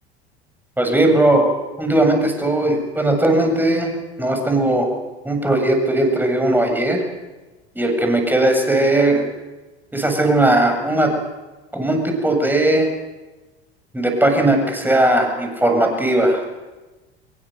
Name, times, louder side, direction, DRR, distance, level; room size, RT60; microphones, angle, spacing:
voice 1, 0.8-1.5 1.8-3.9 4.2-4.9 5.2-7.0 7.8-9.3 9.9-11.1 11.7-12.9 13.9-16.4, right 1 dB, 5° right, 4 dB, 7.6 m, -18 dB
25.5 x 23.0 x 7.9 m, 1.2 s
figure-of-eight pair, 70°, 32 cm